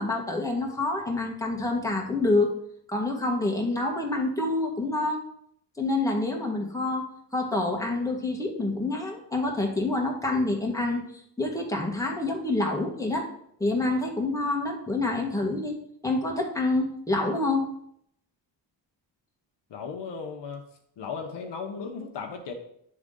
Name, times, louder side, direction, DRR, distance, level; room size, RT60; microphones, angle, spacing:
voice 1, 0.0-2.6 2.9-5.2 5.8-11.1 11.4-13.3 13.6-15.7 16.0-17.7, left 2 dB, 5° left, 0 dB, 1.7 m, -27 dB
voice 2, 19.7-20.7 21.0-22.5, left 5 dB, 65° left, 2 dB, 1.1 m, -36 dB
9.6 x 3.7 x 3.8 m, 0.71 s
cardioid pair, 65°, 45 cm